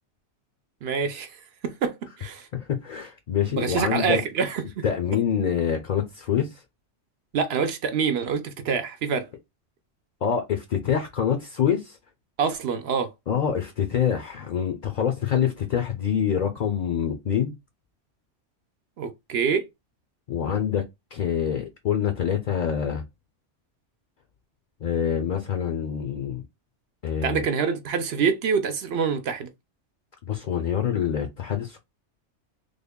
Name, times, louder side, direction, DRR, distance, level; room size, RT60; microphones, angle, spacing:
voice 1, 0.8-1.3 1.6-2.5 3.6-4.8 7.3-9.3 12.4-13.1 19.0-19.7 27.2-29.5, right 6 dB, 65° right, 0.8 m, -26 dB
voice 2, 2.5-4.2 4.8-6.6 10.2-12.0 13.3-17.5 20.3-20.8 21.1-23.0 24.8-26.4 27.0-27.4 30.2-31.8, left 8 dB, 50° left, 0.5 m, -26 dB
3.4 x 2.1 x 3.5 m
omnidirectional pair, 1.2 m